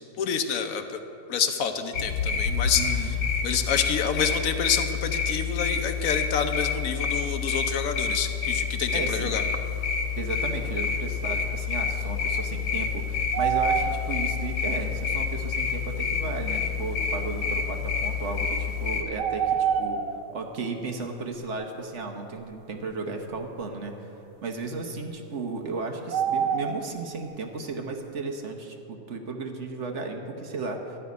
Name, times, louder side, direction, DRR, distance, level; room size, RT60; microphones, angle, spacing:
voice 1, 0.2-0.8 1.3-3.1 3.4-9.4, left 7 dB, 60° left, 8 dB, 1.0 m, -28 dB
sound 1, 1.9-19.0, left 6 dB, 90° left, 1.7 m, -28 dB
voice 2, 2.8-3.2 8.9-9.4 10.2-20.0 20.3-24.1 24.4-31.0, right 3 dB, 50° right, 3 dB, 1.2 m, -34 dB
sound 2, 11.5-11.6 12.4-14.3 15.0-15.1 16.7-16.8 19.2-20.3 26.1-26.9, right 7 dB, 75° right, 1.2 m, -26 dB
12.5 x 5.8 x 9.4 m, 2.9 s
omnidirectional pair, 1.9 m